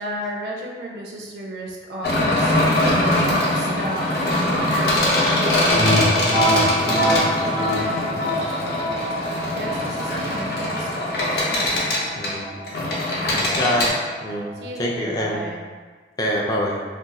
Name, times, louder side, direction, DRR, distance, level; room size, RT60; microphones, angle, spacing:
voice 1, 0.0-3.1 3.5-5.7 7.6-8.2 9.5-11.3 13.1-13.7 14.6-15.7, right 1 dB, 65° right, -1 dB, 0.4 m, -34 dB
sound 1, 2.0-13.9, left 1 dB, 60° left, 0.7 m, -22 dB
sound 2, 5.7-15.3, equal, 90° left, 1.0 m, -26 dB
voice 2, 12.2-12.5 13.5-13.9 14.2-15.5 16.2-16.8, equal, 20° left, -2 dB, 0.3 m, -25 dB
2.5 x 2.2 x 4.0 m, 1.5 s
head